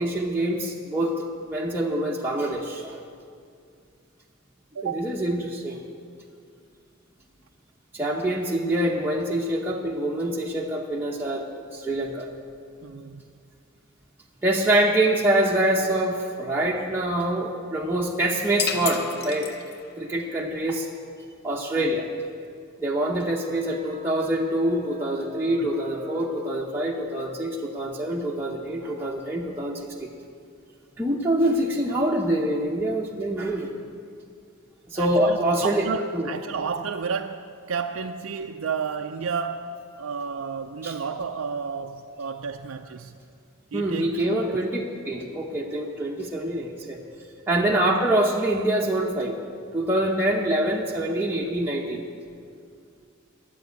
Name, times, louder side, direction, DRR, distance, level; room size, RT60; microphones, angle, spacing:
voice 1, 0.0-3.0 4.8-5.8 7.9-12.3 14.4-19.5 20.0-20.9 21.4-22.1 22.8-30.1 31.0-33.7 34.9-36.3 40.8-40.9 43.7-47.0 47.5-49.4 49.7-52.0, right 1 dB, 10° right, 0.8 m, -25 dB
voice 2, 4.7-5.2 11.8-11.9 12.8-13.2 25.6-25.7 34.9-43.2 43.7-44.6 51.1-51.2, right 5 dB, 70° right, 0.4 m, -32 dB
sound 1, 18.6-20.1, left 7 dB, 50° left, 0.7 m, -31 dB
12.0 x 7.9 x 9.3 m
head